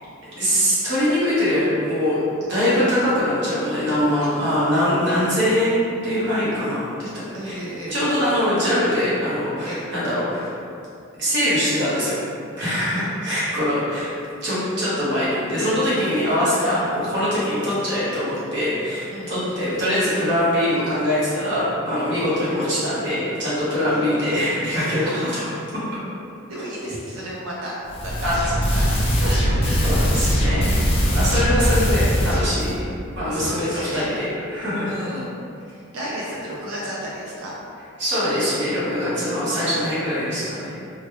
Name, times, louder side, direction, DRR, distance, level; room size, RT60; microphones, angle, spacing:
voice 1, 0.2-7.6 7.9-10.5 11.2-12.2 12.6-14.1 14.4-25.5 28.2-28.3 29.8-30.8 31.1-32.8 33.1-34.9 38.0-40.7, equal, 55° right, -11 dB, 1.1 m, -23 dB
voice 2, 7.3-8.0 9.6-9.9 12.9-13.1 16.0-16.2 16.7-16.9 19.1-19.6 23.9-24.4 25.0-25.3 26.5-27.7 28.0-28.3 28.7-28.9 29.2-30.3 31.0-31.6 33.3-34.1 34.8-35.3 35.7-37.5 39.1-39.7, right 1 dB, 85° right, -6 dB, 0.5 m, -34 dB
sound 1, 27.9-32.8, equal, 25° left, 0.4 m, -20 dB
3.0 x 2.2 x 3.0 m, 2.5 s
head